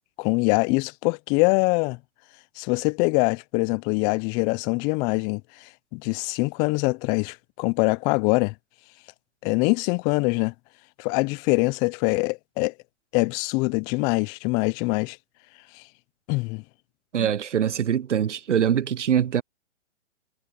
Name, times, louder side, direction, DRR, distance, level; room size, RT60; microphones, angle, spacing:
voice 1, 0.2-2.0 2.6-8.5 9.4-10.5 11.0-12.7 13.1-15.2 16.3-16.6 17.2-17.3, left 28 dB, 10° left, 0.4 m, -24 dB
voice 2, 17.1-19.4, right 9 dB, 75° right, 0.8 m, -23 dB
figure-of-eight pair, 125°, 36 cm